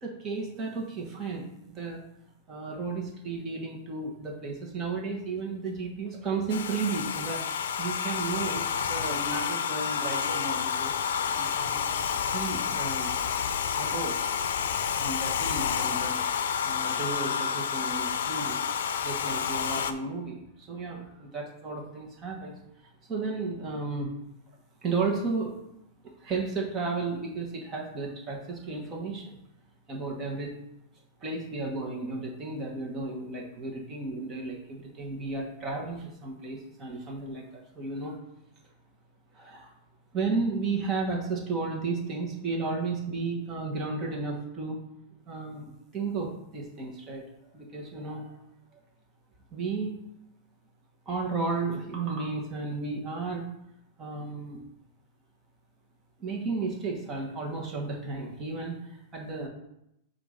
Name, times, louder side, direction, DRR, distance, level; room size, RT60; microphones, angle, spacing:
voice 1, 0.0-2.0 2.5-11.0 11.3-11.8 12.3-13.2 13.8-14.3 14.9-16.2 16.6-18.6 19.0-22.5 23.1-24.1 24.8-25.5 26.2-29.4 29.9-30.5 31.2-38.2 39.3-39.7 40.1-44.8 45.2-47.2 47.5-48.3 48.7-48.8 49.5-50.1 51.1-53.4 54.0-54.6 56.2-59.5, right 3 dB, 25° right, -1 dB, 1.3 m, -33 dB
Domestic sounds home sounds, 6.5-19.9, left 7 dB, 85° left, 0.5 m, -29 dB
7.7 x 2.7 x 5.0 m, 0.83 s
supercardioid pair, 155°, 0 cm